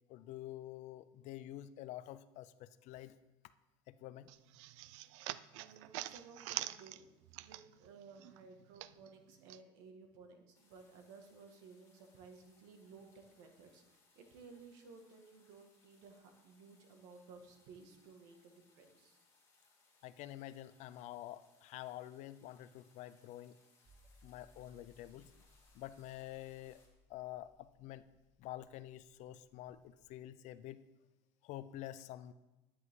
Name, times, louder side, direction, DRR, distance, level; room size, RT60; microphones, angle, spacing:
voice 1, 0.1-3.2 3.9-4.3 20.0-23.6 24.2-25.3 25.7-26.8 27.1-28.0 28.4-30.8 31.4-32.3, left 13 dB, 50° left, 15 dB, 0.5 m, -48 dB
sound 1, 4.3-7.9 8.2-9.6, right 16 dB, 85° right, 0.4 m, -45 dB
voice 2, 5.5-7.0 7.4-13.8 14.2-19.2, right 4 dB, 70° right, 4 dB, 1.8 m, -57 dB
sound 2, 10.5-26.9, left 3 dB, 20° left, 3.0 m, -71 dB
sound 3, 23.8-30.1, left 1 dB, ahead, 1.4 m, -68 dB
10.5 x 9.8 x 3.7 m, 1.0 s
supercardioid pair, 135°, 15 cm